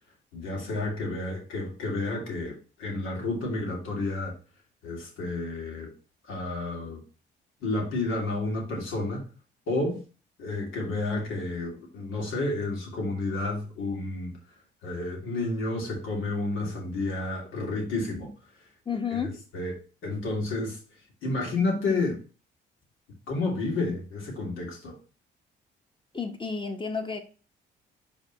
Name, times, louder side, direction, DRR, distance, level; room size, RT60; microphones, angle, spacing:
voice 1, 0.3-4.4 4.8-5.9 6.3-7.0 7.6-9.2 9.7-10.0 10.4-14.4 14.8-18.3 19.5-19.7 20.0-20.8 21.2-22.2 23.3-25.0, left 2 dB, 90° left, 2.4 m, -30 dB
voice 2, 18.8-19.3 26.1-27.2, left 5 dB, 25° left, 1.3 m, -31 dB
5.1 x 3.6 x 5.3 m
cardioid pair, 90°, 20 cm